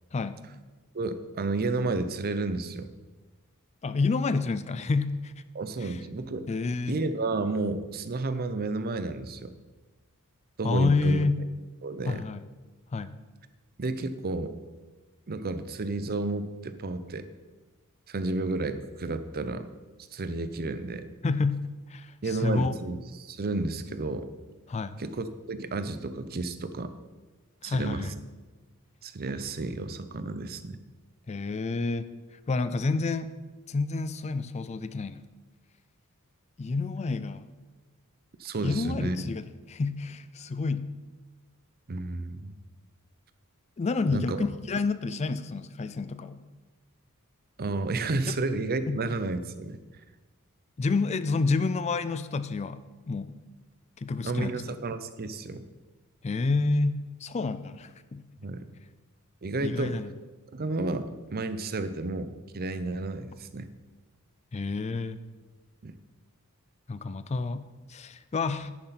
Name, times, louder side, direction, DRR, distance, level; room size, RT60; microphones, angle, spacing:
voice 1, 0.1-0.4 3.8-5.4 5.8-6.0 6.5-7.0 10.6-11.4 12.1-12.4 12.9-13.2 21.2-21.6 21.9-22.8 24.7-25.0 27.6-28.1 31.3-33.3 33.7-35.2 36.6-37.5 38.6-40.9 43.8-46.4 48.3-48.4 48.9-49.0 50.8-53.4 54.0-54.6 56.2-58.2 59.6-60.1 64.5-65.2 66.9-68.7, left 3 dB, 30° left, 13 dB, 0.4 m, -29 dB
voice 2, 0.9-2.9 5.5-6.5 6.9-9.5 10.6-11.3 11.8-12.2 13.8-14.5 15.3-17.3 18.1-19.7 20.1-21.1 22.2-24.3 25.0-26.9 27.6-28.1 29.0-30.8 38.4-39.2 41.9-42.6 44.1-44.5 47.6-49.8 54.2-55.6 58.4-58.7 59.4-59.9 60.5-63.7 65.8-66.0, right 3 dB, 45° right, 11 dB, 0.6 m, -31 dB
10.5 x 9.9 x 4.2 m, 1.3 s
head